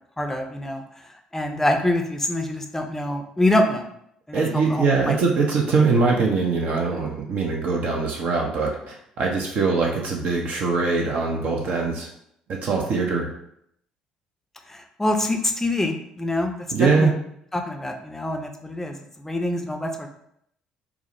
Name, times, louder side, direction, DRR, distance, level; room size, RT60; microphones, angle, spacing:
voice 1, 0.2-0.8 1.3-3.9 4.3-5.2 14.7-16.5 16.8-17.1 17.5-20.1, left 1 dB, 10° left, 4 dB, 0.5 m, -25 dB
voice 2, 4.3-12.1 12.5-13.3 16.7-17.1, right 4 dB, 55° right, 0 dB, 0.6 m, -22 dB
4.7 x 2.0 x 2.7 m, 0.73 s
figure-of-eight pair, 50°, 3 cm